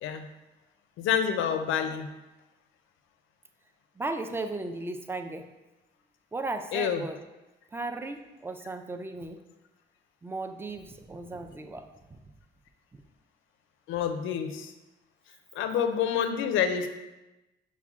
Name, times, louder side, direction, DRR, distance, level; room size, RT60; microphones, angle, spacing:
voice 1, 1.0-2.1 6.7-7.0 13.9-14.7 15.5-16.9, left 8 dB, 85° left, 8 dB, 0.4 m, -28 dB
voice 2, 4.0-5.4 6.3-7.2 7.7-9.4 10.2-12.2 12.9-13.0, right 2 dB, 10° right, 5 dB, 0.4 m, -36 dB
5.7 x 2.2 x 3.5 m, 1.0 s
cardioid pair, 90°, 20 cm